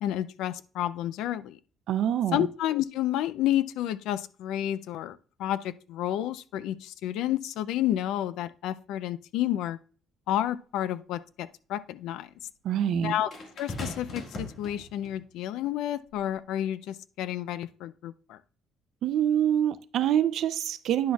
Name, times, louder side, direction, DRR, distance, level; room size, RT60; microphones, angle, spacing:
voice 1, 0.0-1.6 2.3-9.8 10.3-12.3 13.0-13.3 13.6-18.4, left 12 dB, 85° left, 0.4 m, -30 dB
voice 2, 1.9-2.5 12.6-13.1 19.0-21.1, right 10 dB, 65° right, 0.5 m, -25 dB
sound 1, 10.4-10.5 13.3-15.2 16.1-16.3, left 2 dB, 40° left, 1.7 m, -39 dB
10.5 x 6.3 x 2.3 m
cardioid pair, 140°, 0 cm